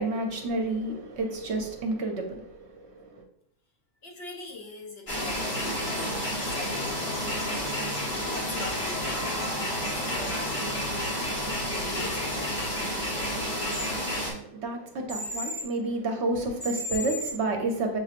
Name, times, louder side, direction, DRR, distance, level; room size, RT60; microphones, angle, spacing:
voice 1, 0.0-3.2 14.0-18.0, right 2 dB, 65° right, 0.9 m, -30 dB
voice 2, 4.0-6.1 6.4-7.7 8.3-11.0 11.8-12.4, left 2 dB, 55° left, 0.9 m, -43 dB
sound 1, 5.1-14.3, equal, 40° left, 1.4 m, -30 dB
sound 2, 6.4-6.5 6.9-8.0 8.3-8.9 9.4-9.5 9.8-9.9 10.3-10.4 13.7-13.8 15.1-15.6 16.6-17.3, left 2 dB, 75° left, 2.5 m, -35 dB
sound 3, 7.5-12.4, right 2 dB, 5° right, 1.1 m, -45 dB
6.6 x 2.9 x 2.5 m
omnidirectional pair, 1.4 m